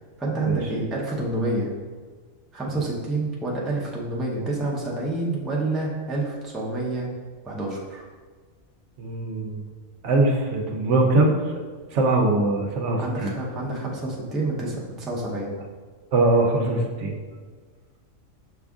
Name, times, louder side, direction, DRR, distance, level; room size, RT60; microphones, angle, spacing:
voice 1, 0.2-1.7 2.5-7.1 7.4-8.1 13.0-15.6, right 2 dB, ahead, -4 dB, 0.4 m, -28 dB
voice 2, 9.0-9.6 10.0-11.5 11.9-13.3 16.1-17.1, right 2 dB, 70° right, 2 dB, 0.9 m, -22 dB
6.0 x 2.5 x 3.5 m, 1.5 s
omnidirectional pair, 1.3 m